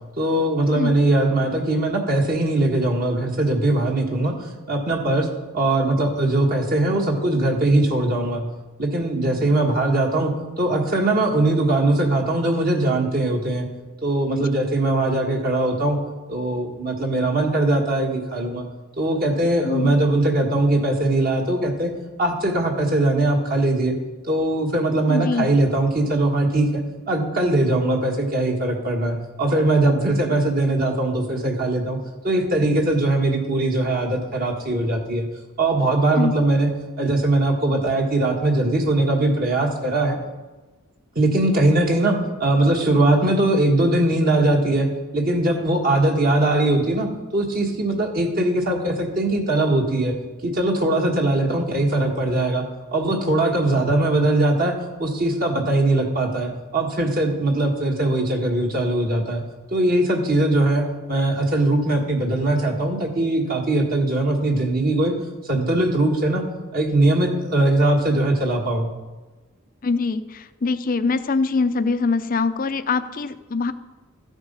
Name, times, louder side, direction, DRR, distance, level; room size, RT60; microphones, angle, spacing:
voice 1, 0.2-5.3 5.5-8.4 8.8-13.7 14.0-16.0 16.3-18.6 19.0-21.9 22.2-23.9 24.3-32.0 32.2-35.3 35.6-36.7 37.0-40.2 41.1-44.9 45.1-50.1 50.4-52.6 52.9-59.4 59.7-65.1 65.4-66.4 66.7-68.9, right 2 dB, 45° right, 1 dB, 1.5 m, -21 dB
voice 2, 19.6-20.0 25.1-25.5 36.1-36.4 69.8-73.7, left 4 dB, 40° left, 12 dB, 0.5 m, -23 dB
13.5 x 8.0 x 5.3 m, 1.2 s
head